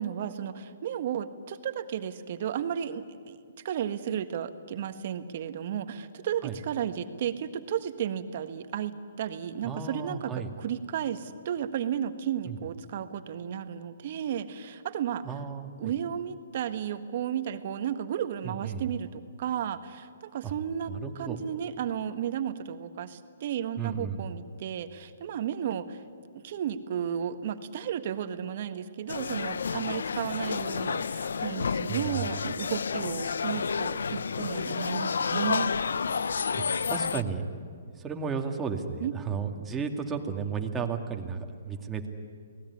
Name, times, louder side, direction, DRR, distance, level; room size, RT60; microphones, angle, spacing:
voice 1, 0.0-3.4 3.6-15.4 15.8-26.0 26.3-35.7 39.0-39.1, right 9 dB, 50° right, 9 dB, 1.5 m, -33 dB
voice 2, 9.6-10.5 12.5-12.6 15.2-15.9 18.4-18.9 20.4-20.5 20.9-21.4 23.8-24.2 31.9-32.3 36.5-37.5 38.0-42.1, right 6 dB, 15° right, 2 dB, 2.2 m, -34 dB
sound 1, 29.1-37.2, left 5 dB, 80° left, 0.7 m, -30 dB
29.0 x 19.0 x 9.8 m, 2.1 s
hypercardioid pair, 140°, 0 cm